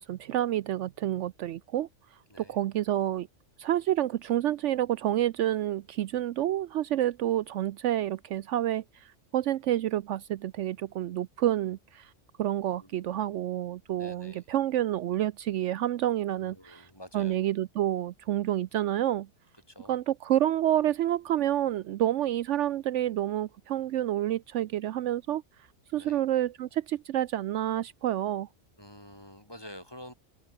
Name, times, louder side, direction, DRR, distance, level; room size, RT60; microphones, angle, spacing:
voice 1, 0.0-1.9 2.4-3.3 3.6-12.1 12.4-16.9 17.1-19.3 19.9-25.4 25.9-28.5, right 12 dB, 75° right, 0.9 m, -29 dB
voice 2, 12.8-13.3 14.0-14.5 16.4-17.5 19.7-20.0 25.9-26.2 28.8-30.1, equal, 20° left, 8.2 m, -48 dB
omnidirectional pair, 1.3 m